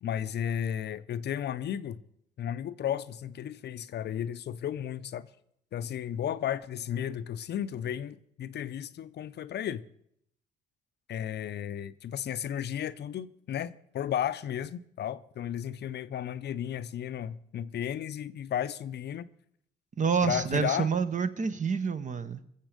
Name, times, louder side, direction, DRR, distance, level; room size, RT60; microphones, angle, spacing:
voice 1, 0.0-2.0 2.4-5.3 5.7-9.8 11.1-19.3 20.2-20.9, left 9 dB, 60° left, 0.6 m, -34 dB
voice 2, 20.0-22.4, right 6 dB, 40° right, 0.9 m, -28 dB
20.5 x 7.3 x 5.1 m
cardioid pair, 90°, 20 cm